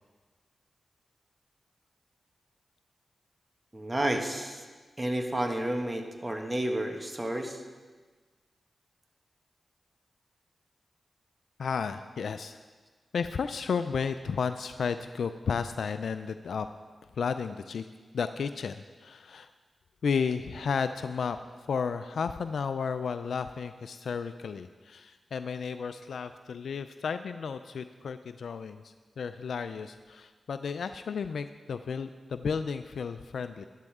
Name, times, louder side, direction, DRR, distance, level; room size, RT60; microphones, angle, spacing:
voice 1, 3.7-4.6 5.0-7.6, right 1 dB, 25° right, 4 dB, 1.7 m, -31 dB
voice 2, 11.6-12.6 13.1-16.7 17.2-17.9 18.1-19.5 20.0-21.4 21.7-33.7, left 6 dB, 80° left, 10 dB, 0.4 m, -33 dB
13.0 x 12.0 x 3.6 m, 1.4 s
cardioid pair, 45°, 0 cm